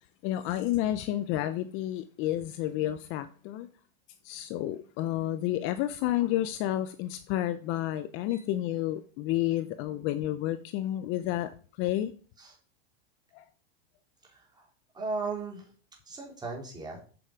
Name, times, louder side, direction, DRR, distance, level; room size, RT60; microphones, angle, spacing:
voice 1, 0.2-3.7 4.2-11.5 11.8-12.1 13.3-13.4, left 13 dB, 40° left, 0.6 m, -30 dB
voice 2, 14.2-14.7 14.9-15.7 16.0-17.0, right 4 dB, 15° right, 3.3 m, -37 dB
7.9 x 6.7 x 5.0 m
supercardioid pair, 140°, 30 cm